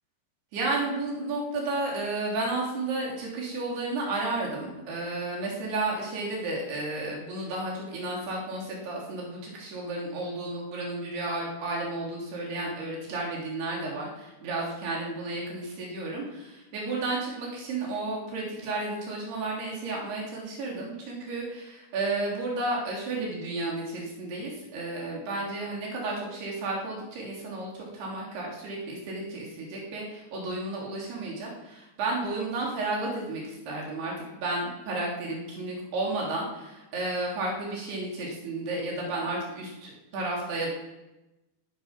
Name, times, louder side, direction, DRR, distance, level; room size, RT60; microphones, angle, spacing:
voice 1, 0.5-40.7, right 2 dB, 70° right, -3 dB, 5.4 m, -32 dB
17.5 x 10.0 x 6.1 m, 1.0 s
omnidirectional pair, 4.9 m